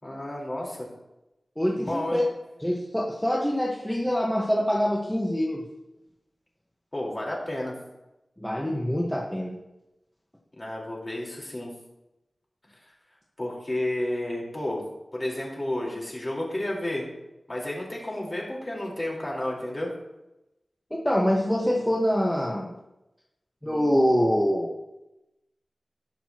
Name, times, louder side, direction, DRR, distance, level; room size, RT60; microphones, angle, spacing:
voice 1, 0.0-0.9 1.8-2.2 6.9-7.7 10.6-11.7 13.4-14.8 15.1-17.1 17.5-19.9, left 1 dB, 30° left, -3 dB, 4.7 m, -31 dB
voice 2, 1.6-2.3 2.6-5.6 8.4-9.6 20.9-22.7 23.6-24.7, equal, 5° left, -3 dB, 1.6 m, -25 dB
20.0 x 6.9 x 3.1 m, 0.94 s
wide cardioid pair, 60°, 0 cm